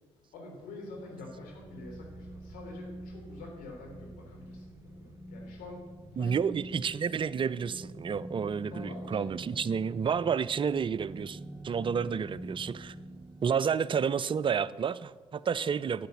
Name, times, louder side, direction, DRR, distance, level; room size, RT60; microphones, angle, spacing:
voice 1, 0.3-6.4 8.7-9.7 15.5-15.8, left 2 dB, 70° left, -1 dB, 3.5 m, -47 dB
sound 1, 0.8-13.5, right 1 dB, 15° right, 1.2 m, -46 dB
voice 2, 6.2-11.4 11.6-12.9 13.4-16.1, right 6 dB, 35° right, 17 dB, 0.5 m, -30 dB
11.5 x 8.0 x 7.0 m, 1.4 s
hypercardioid pair, 45°, 15 cm